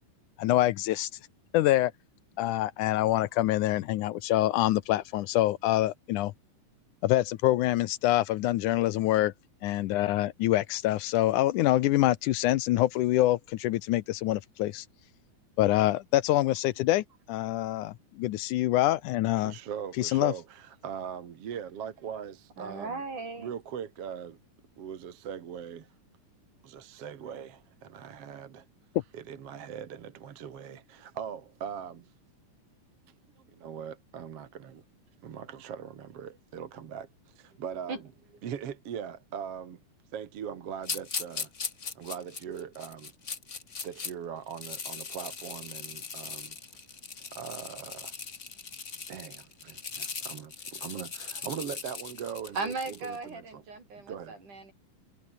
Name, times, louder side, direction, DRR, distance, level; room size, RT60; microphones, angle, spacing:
voice 1, 0.4-1.1 1.5-1.9 2.4-6.3 7.0-9.3 9.6-14.9 15.6-19.5 20.0-20.3, left 15 dB, 75° left, 2.2 m, -25 dB
voice 2, 19.4-23.0 23.4-24.4 24.8-25.9 26.6-28.7 29.1-32.1 33.4-34.8 35.2-38.0 38.4-39.8 40.1-41.5 42.0-43.1 43.8-46.6 47.3-48.1 49.1-53.6 54.1-54.4, right 8 dB, 50° right, 2.4 m, -40 dB
voice 3, 22.6-23.5 37.9-38.0 52.6-54.7, right 3 dB, 70° right, 8.8 m, -37 dB
sound 1, 40.8-44.1 44.5-53.2, left 5 dB, 30° left, 1.4 m, -39 dB
omnidirectional pair, 3.7 m